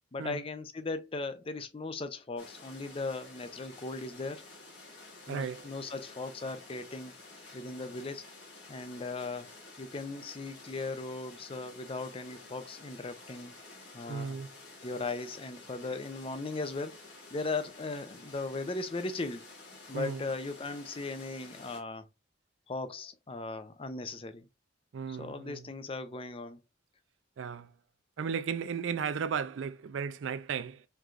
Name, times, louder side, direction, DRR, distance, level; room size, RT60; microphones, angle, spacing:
voice 1, 0.1-4.5 5.3-7.1 7.5-8.2 8.7-9.5 9.8-13.5 13.9-14.4 14.8-17.0 17.3-19.5 19.9-22.1 22.7-24.5 25.1-26.6, left 3 dB, 30° left, 0.5 m, -38 dB
sound 1, 2.4-21.8, left 3 dB, 60° left, 1.7 m, -51 dB
voice 2, 5.3-5.7 14.1-14.5 19.9-20.2 24.9-25.7 27.4-27.7 28.2-30.9, right 6 dB, 80° right, 0.4 m, -35 dB
4.6 x 3.7 x 2.4 m
head